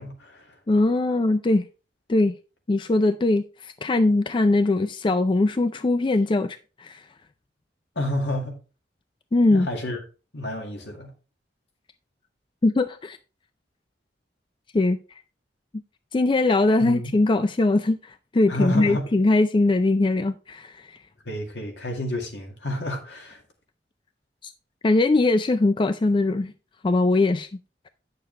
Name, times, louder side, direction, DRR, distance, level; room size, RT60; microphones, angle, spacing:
voice 1, 0.0-0.5 8.0-8.6 9.5-10.0 10.3-11.1 16.8-17.1 18.5-19.1 21.3-23.4, left 1 dB, 75° left, 2.0 m, -30 dB
voice 2, 0.7-1.7 2.1-2.3 2.7-7.0 9.3-9.7 12.6-13.2 14.7-15.0 16.1-21.0 24.4-24.5 24.8-26.5 26.8-27.5, left 2 dB, 30° left, 0.4 m, -21 dB
9.3 x 6.7 x 3.3 m
head